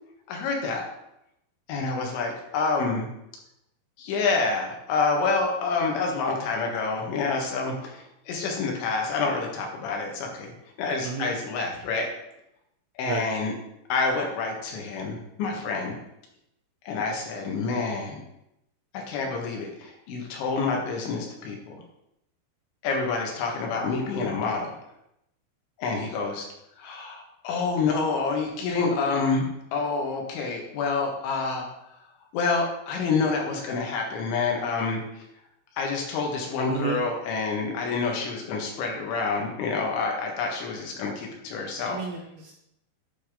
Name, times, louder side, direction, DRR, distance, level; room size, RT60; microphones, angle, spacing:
voice 1, 0.3-0.9 1.7-3.1 4.0-10.5 10.8-12.1 13.0-13.5 13.9-16.0 16.9-18.2 18.9-21.8 22.8-24.7 25.8-26.5 26.8-29.5 29.7-31.7 32.3-35.2 35.8-42.0, left 4 dB, 80° left, 1 dB, 3.7 m, -28 dB
voice 2, 41.8-42.5, right 6 dB, 80° right, 0 dB, 2.2 m, -31 dB
11.0 x 5.0 x 3.7 m, 0.82 s
omnidirectional pair, 5.3 m